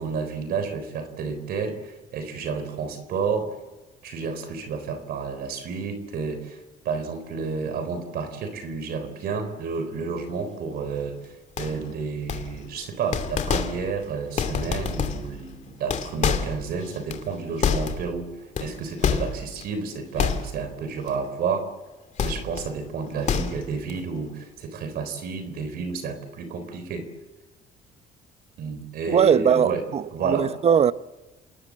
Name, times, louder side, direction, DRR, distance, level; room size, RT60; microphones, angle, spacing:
voice 1, 0.0-3.6 4.0-18.3 18.6-21.7 22.2-27.1 28.6-29.9 30.1-30.5, right 5 dB, 65° right, 3.9 m, -31 dB
sound 1, 11.6-11.9 12.3-12.8 13.1-14.0 14.3-15.4 15.7-18.1 18.6-19.6 20.2-20.8 21.1-21.3 22.2-22.7 23.1-23.9, left 6 dB, 45° left, 2.5 m, -27 dB
voice 2, 29.1-30.9, right 8 dB, 40° right, 0.8 m, -20 dB
28.0 x 19.5 x 7.5 m
cardioid pair, 110°, 17 cm